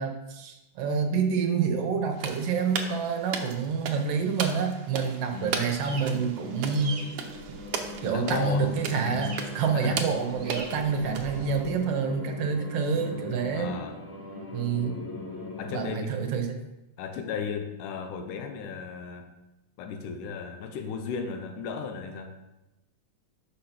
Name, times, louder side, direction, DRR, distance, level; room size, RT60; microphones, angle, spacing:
voice 1, 0.0-7.1 8.0-13.8 14.5-15.0 15.7-16.6, right 5 dB, 70° right, 4 dB, 1.5 m, -28 dB
sound 1, 2.2-11.9, right 6 dB, 90° right, 1.2 m, -37 dB
voice 2, 5.3-5.7 8.0-8.7 9.0-9.2 9.7-10.0 13.5-14.0 15.6-16.1 17.0-19.3 19.8-22.4, left 6 dB, 90° left, 6 dB, 2.2 m, -35 dB
sound 2, 5.6-6.1 6.6-7.0 9.1-9.4 10.4-10.7, right 4 dB, 50° right, 0.8 m, -40 dB
sound 3, 5.8-15.9, left 2 dB, 65° left, 3.4 m, -40 dB
5.7 x 5.6 x 5.8 m, 0.98 s
omnidirectional pair, 3.6 m